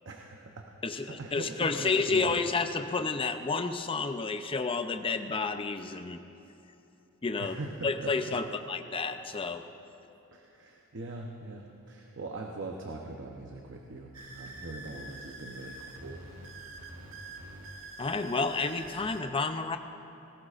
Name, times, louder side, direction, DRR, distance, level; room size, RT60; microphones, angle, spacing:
voice 1, 0.0-2.4 7.4-8.4 10.3-16.3, right 2 dB, 60° right, 1 dB, 0.9 m, -41 dB
voice 2, 0.8-6.2 7.2-7.5 7.8-9.6 18.0-19.8, left 4 dB, 25° left, 8 dB, 0.5 m, -30 dB
sound 1, 14.1-19.2, right 2 dB, 90° right, 1.6 m, -46 dB
19.0 x 17.0 x 2.5 m, 2.8 s
head